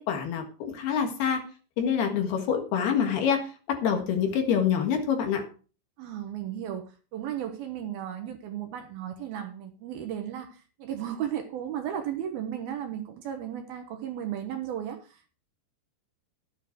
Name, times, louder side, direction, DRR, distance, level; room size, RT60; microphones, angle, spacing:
voice 1, 0.0-1.4 1.8-5.4, left 7 dB, 65° left, 4 dB, 3.5 m, -26 dB
voice 2, 6.0-15.3, right 10 dB, 70° right, 6 dB, 2.7 m, -35 dB
12.5 x 9.5 x 4.6 m, 0.37 s
omnidirectional pair, 5.1 m